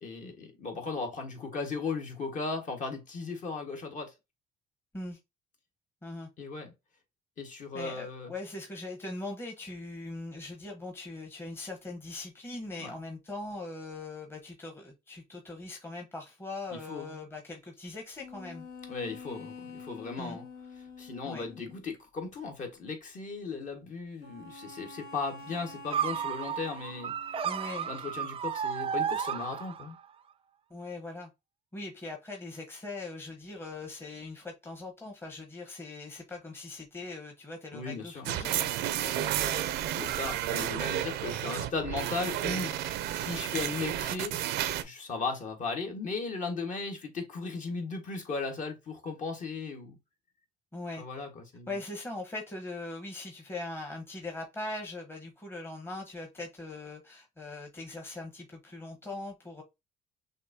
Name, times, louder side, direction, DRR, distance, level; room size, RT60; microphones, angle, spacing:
voice 1, 0.0-4.1 6.4-6.7 7.4-8.3 12.8-12.9 16.7-17.2 18.9-20.4 21.0-27.1 27.8-30.0 37.7-38.3 40.0-42.7 43.1-44.4 44.8-50.0 51.0-51.8, left 4 dB, 50° left, 1.6 m, -36 dB
voice 2, 7.7-18.7 20.2-20.4 21.2-21.4 27.4-27.9 30.7-31.3 31.7-39.8 40.5-40.8 50.7-51.2 51.7-59.6, left 2 dB, 15° left, 1.0 m, -41 dB
sound 1, 18.2-21.8 24.2-28.1, left 4 dB, 85° left, 2.1 m, -48 dB
sound 2, 25.9-30.0, right 8 dB, 35° right, 0.4 m, -33 dB
sound 3, 38.2-44.8, right 12 dB, 85° right, 0.6 m, -32 dB
6.2 x 2.7 x 2.7 m
cardioid pair, 110°, 17 cm